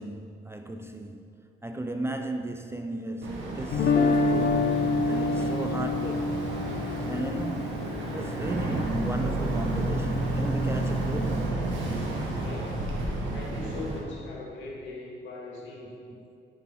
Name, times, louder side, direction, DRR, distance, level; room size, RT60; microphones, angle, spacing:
voice 1, 0.0-6.5 7.1-11.5 16.1-16.3, right 1 dB, 15° right, 6 dB, 0.4 m, -36 dB
Boat Water vehicle, 3.2-14.0, right 2 dB, 75° right, 1.5 m, -31 dB
Guitar, 3.7-9.7, left 3 dB, 55° left, 0.6 m, -27 dB
voice 2, 12.4-12.8 13.3-16.0, left 2 dB, 75° left, -3 dB, 1.9 m, -40 dB
6.9 x 6.1 x 4.5 m, 2.4 s
cardioid pair, 90°, 20 cm